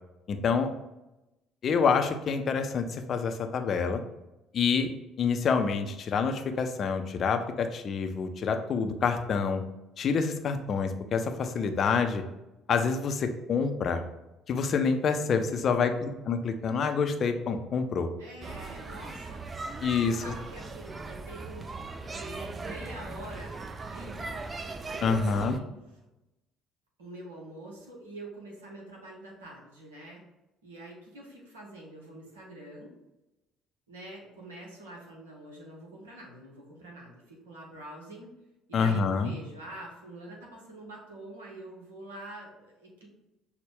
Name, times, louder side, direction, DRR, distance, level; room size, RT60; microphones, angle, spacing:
voice 1, 0.3-0.7 1.6-4.0 4.5-4.9 5.2-9.6 10.0-12.2 12.7-14.0 14.5-18.1 19.8-20.3 25.0-25.6 38.7-39.3, left 5 dB, 45° left, 7 dB, 0.4 m, -27 dB
voice 2, 18.2-19.5 19.7-21.7 22.1-23.6 23.9-24.4 24.9-25.7 26.0-26.1 27.0-30.2 30.6-32.9 33.9-38.4 38.7-43.1, right 1 dB, 75° right, -2 dB, 0.8 m, -45 dB
sound 1, 18.4-25.6, right 3 dB, 30° right, 0.4 m, -39 dB
5.8 x 2.1 x 3.5 m, 0.96 s
figure-of-eight pair, 50°, 0 cm